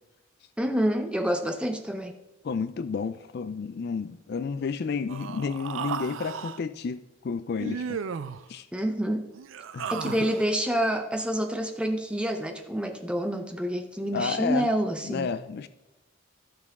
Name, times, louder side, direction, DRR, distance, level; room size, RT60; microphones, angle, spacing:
voice 1, 0.6-2.1 8.7-9.3 9.9-15.3, equal, 5° right, 0.6 m, -28 dB
voice 2, 2.4-8.0 8.5-8.7 9.7-10.3 14.1-14.7 15.0-15.7, left 5 dB, 50° left, 0.3 m, -31 dB
Human voice, 5.1-6.6 7.6-8.4 9.3-10.5, right 6 dB, 70° right, 0.4 m, -35 dB
13.5 x 6.0 x 3.6 m
head